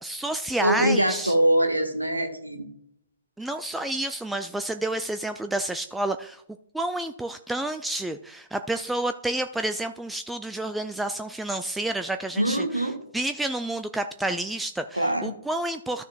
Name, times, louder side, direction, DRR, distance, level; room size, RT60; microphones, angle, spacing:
voice 1, 0.0-1.3 3.4-6.4 6.7-12.6 13.1-16.0, right 1 dB, 5° right, 7 dB, 0.3 m, -29 dB
voice 2, 0.6-2.7 12.4-13.0 14.9-15.3, right 1 dB, 85° right, 3 dB, 1.6 m, -23 dB
13.5 x 6.2 x 2.4 m, 0.69 s
figure-of-eight pair, 120°, 0 cm